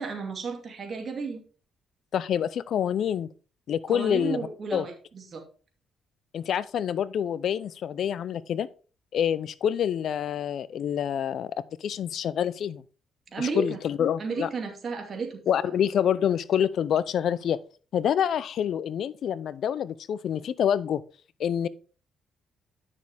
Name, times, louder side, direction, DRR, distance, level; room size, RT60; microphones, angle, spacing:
voice 1, 0.0-1.4 3.9-5.4 13.3-13.8 14.2-15.8, right 4 dB, 45° right, 2.4 m, -33 dB
voice 2, 2.1-3.3 3.7-4.4 4.7-4.8 6.3-8.7 9.1-11.5 11.8-12.8 13.4-14.5 15.5-17.6 17.9-21.0 21.4-21.7, left 9 dB, 65° left, 0.5 m, -27 dB
9.8 x 6.4 x 3.5 m
cardioid pair, 90°, 0 cm